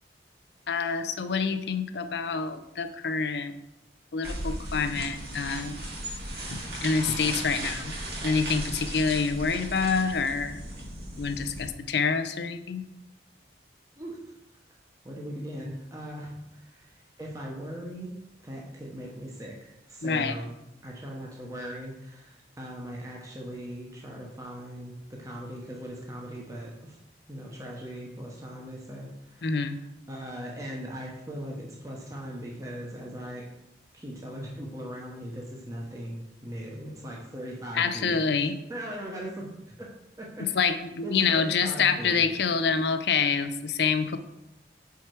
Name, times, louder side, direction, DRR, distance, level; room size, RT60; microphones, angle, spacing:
voice 1, 0.7-3.5 4.1-5.8 6.5-7.9 8.2-10.6 11.2-12.8 20.0-20.4 29.4-29.8 37.7-38.5 40.5-44.2, left 5 dB, 70° left, 10 dB, 0.5 m, -27 dB
sound 1, 4.2-11.7, right 1 dB, 55° right, 2.0 m, -36 dB
voice 2, 15.0-18.1 18.4-20.5 20.8-27.0 27.3-29.7 30.1-33.4 33.9-38.2 38.5-39.5 39.8-39.9 40.2-40.5 41.0-42.2, equal, 20° right, -3 dB, 0.9 m, -39 dB
5.7 x 4.7 x 4.5 m, 0.88 s
head